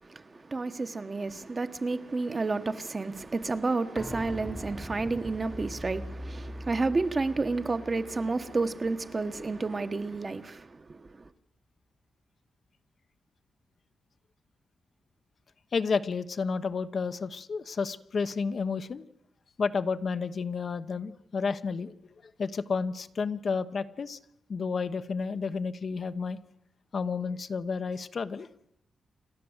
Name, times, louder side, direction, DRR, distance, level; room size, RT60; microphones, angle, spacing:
voice 1, 0.0-11.3, right 3 dB, 30° right, 1.3 m, -31 dB
sound 1, 4.0-9.6 9.9-10.0, equal, ahead, 1.2 m, -42 dB
voice 2, 15.7-19.0 19.6-21.9 22.4-24.2 24.5-26.4 26.9-28.5, left 5 dB, 50° left, 1.0 m, -31 dB
28.0 x 12.5 x 8.1 m
cardioid pair, 90°, 0 cm